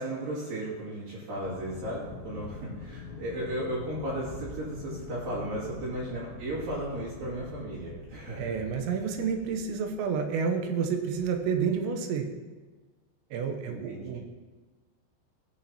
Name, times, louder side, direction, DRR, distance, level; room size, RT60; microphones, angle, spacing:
voice 1, 0.0-8.6 13.6-14.2, right 1 dB, 55° right, -6 dB, 3.6 m, -35 dB
sound 1, 1.4-11.7, left 4 dB, 85° left, 3.0 m, -45 dB
voice 2, 8.4-12.3 13.3-14.2, right 6 dB, 90° right, 5 dB, 3.1 m, -29 dB
16.5 x 5.7 x 2.9 m, 1.3 s
omnidirectional pair, 5.2 m